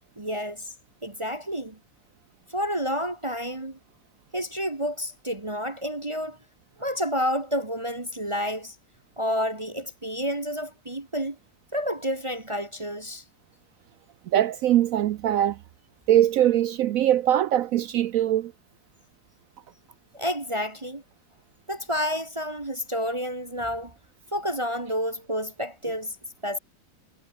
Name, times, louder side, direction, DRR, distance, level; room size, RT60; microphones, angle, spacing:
voice 1, 0.2-0.7 1.0-1.8 2.5-3.8 4.3-6.4 6.8-8.7 9.2-11.4 11.7-13.2 20.1-21.0 21.7-24.0 24.3-26.2 26.4-26.6, equal, 20° right, 1.1 m, -29 dB
voice 2, 14.3-15.6 16.1-18.5, right 12 dB, 70° right, 0.8 m, -22 dB
omnidirectional pair, 1.9 m